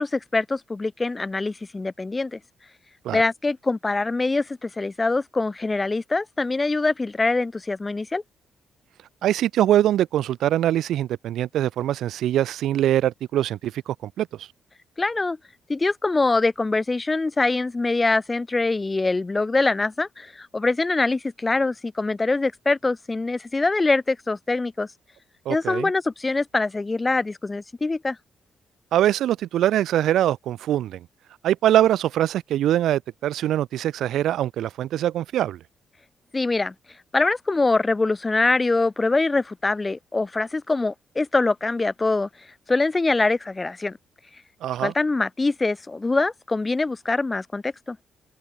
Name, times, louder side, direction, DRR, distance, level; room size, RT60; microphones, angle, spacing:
voice 1, 0.0-2.4 3.1-8.2 15.0-15.4 15.7-24.9 25.5-28.2 36.3-36.7 37.1-42.3 42.7-44.0 44.8-48.0, left 3 dB, 15° left, 2.5 m, -24 dB
voice 2, 9.2-14.5 25.4-25.9 28.9-31.0 31.4-35.6 44.6-44.9, right 12 dB, 80° right, 2.6 m, -23 dB
open air
cardioid pair, 160°, 0 cm